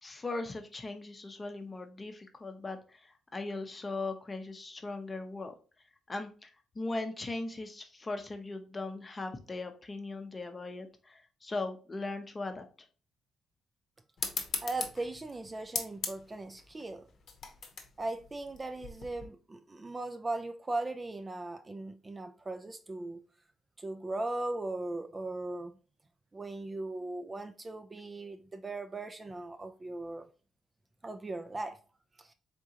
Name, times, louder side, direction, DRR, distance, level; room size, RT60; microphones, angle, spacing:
voice 1, 0.0-5.5 6.1-12.6, left 2 dB, 25° left, 0.7 m, -39 dB
sound 1, 14.2-19.3, left 5 dB, 60° left, 0.8 m, -39 dB
voice 2, 14.6-17.1 18.0-23.2 23.8-25.7 26.3-30.3 31.0-31.8 32.2-32.3, right 2 dB, 25° right, 0.4 m, -38 dB
3.7 x 3.6 x 2.8 m
cardioid pair, 90°, 0 cm